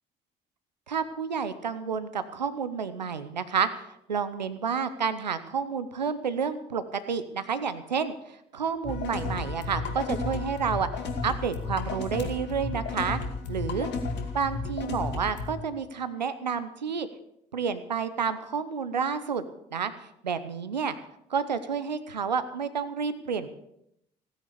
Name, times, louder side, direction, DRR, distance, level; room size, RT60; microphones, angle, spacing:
voice 1, 0.9-8.1 8.5-10.9 11.2-13.2 13.5-13.9 14.3-17.1 17.5-19.4 19.7-19.9 20.2-20.9 21.3-23.5, right 6 dB, 85° right, 12 dB, 0.8 m, -30 dB
sound 1, 8.8-15.5, left 3 dB, 55° left, 2.2 m, -33 dB
16.5 x 9.8 x 6.8 m, 0.77 s
figure-of-eight pair, 50°, 21 cm